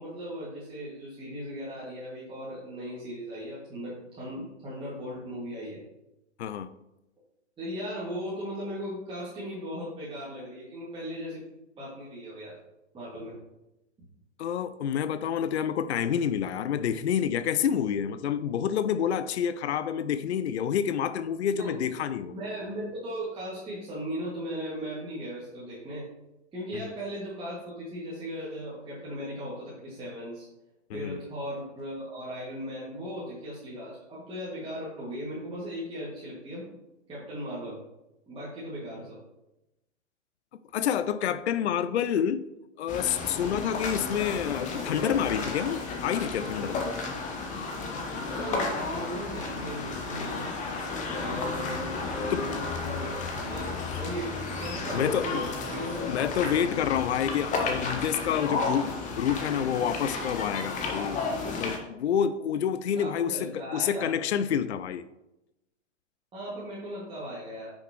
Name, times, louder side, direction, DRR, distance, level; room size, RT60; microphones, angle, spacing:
voice 1, 0.0-5.8 7.6-11.4 11.8-12.5 12.9-13.4 21.6-22.0 22.3-26.1 26.5-30.5 30.9-36.7 37.1-37.8 38.3-39.2 48.3-50.5 51.1-56.1 62.9-64.1 66.3-67.7, equal, 15° right, 2.3 m, -37 dB
voice 2, 6.4-6.7 14.4-22.3 26.7-26.9 30.9-31.2 40.7-42.5 42.8-46.9 51.2-51.4 52.3-52.5 54.9-55.4 56.1-65.0, left 8 dB, 65° left, 0.5 m, -28 dB
sound 1, 42.9-61.8, left 3 dB, 20° left, 1.2 m, -33 dB
9.4 x 6.2 x 3.1 m
figure-of-eight pair, 105°, 37 cm